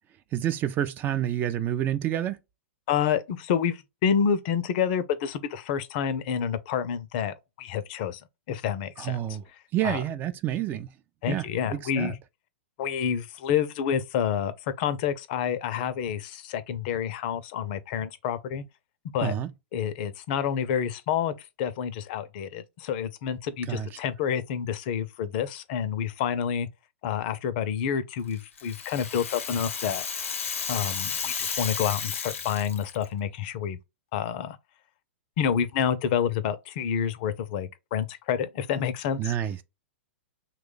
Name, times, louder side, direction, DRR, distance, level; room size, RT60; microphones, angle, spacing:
voice 1, 0.3-2.4 9.0-9.4 9.7-10.9 11.3-12.1 19.2-19.5 23.7-24.0 39.2-39.6, right 11 dB, 25° right, 0.4 m, -29 dB
voice 2, 2.9-8.2 8.5-9.2 9.8-10.0 11.2-12.2 12.8-18.6 19.1-19.3 19.7-26.7 27.0-30.0 30.7-33.8 34.1-34.6 35.4-39.3, left 8 dB, 45° left, 0.5 m, -28 dB
Rattle (instrument), 28.3-33.0, left 6 dB, 75° left, 0.7 m, -33 dB
3.0 x 2.2 x 3.8 m
hypercardioid pair, 115°, 7 cm